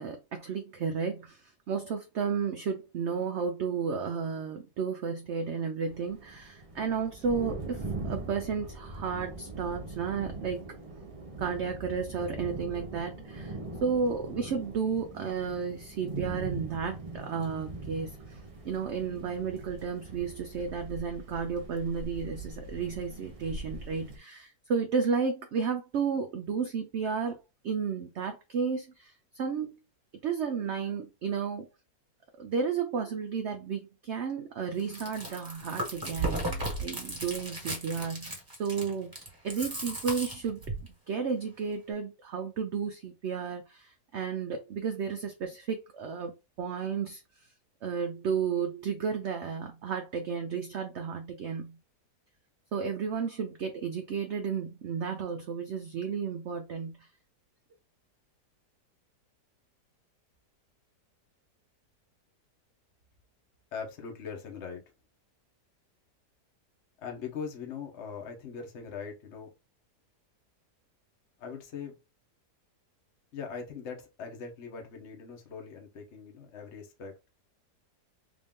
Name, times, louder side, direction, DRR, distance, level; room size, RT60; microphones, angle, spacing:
voice 1, 0.0-10.7 11.4-27.4 27.6-29.8 30.2-31.7 32.4-39.1 39.4-40.6 41.1-47.2 47.8-51.8 52.7-57.1, right 6 dB, 80° right, 0.6 m, -33 dB
sound 1, 5.8-24.2, right 2 dB, 35° right, 0.5 m, -41 dB
Chewing mastication, 34.8-40.9, right 2 dB, 15° right, 1.2 m, -35 dB
voice 2, 63.7-64.8 67.0-69.5 71.4-72.0 73.3-77.1, left 6 dB, 50° left, 1.1 m, -41 dB
3.6 x 2.6 x 3.5 m
omnidirectional pair, 1.8 m